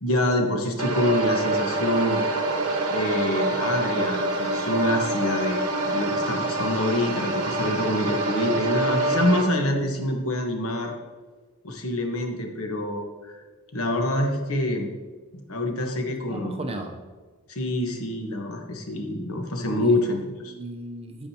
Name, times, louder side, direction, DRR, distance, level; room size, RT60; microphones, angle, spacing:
voice 1, 0.0-2.2 2.9-10.9 11.6-13.4 13.7-14.9 15.5-16.6 17.5-20.2 20.4-20.5, left 1 dB, 65° left, 3 dB, 1.3 m, -26 dB
sound 1, 0.8-9.4, right 2 dB, 80° right, 1.1 m, -26 dB
voice 2, 16.1-17.0 19.7-21.3, right 2 dB, 25° right, 3 dB, 0.7 m, -36 dB
9.3 x 8.6 x 2.9 m, 1.4 s
head